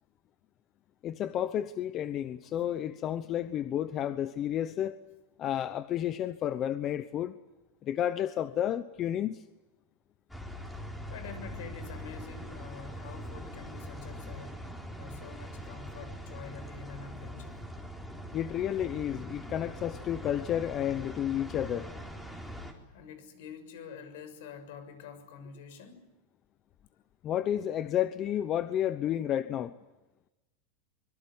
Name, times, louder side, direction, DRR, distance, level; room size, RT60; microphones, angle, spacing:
voice 1, 1.0-5.0 5.4-7.4 7.8-9.4 18.3-21.9 27.2-29.7, left 10 dB, 30° left, 0.9 m, -31 dB
sound 1, 10.3-22.7, equal, 5° left, 3.9 m, -42 dB
voice 2, 11.1-14.7 15.0-17.6 22.9-26.1, left 6 dB, 70° left, 6.5 m, -47 dB
24.5 x 23.0 x 9.6 m
supercardioid pair, 155°, 0 cm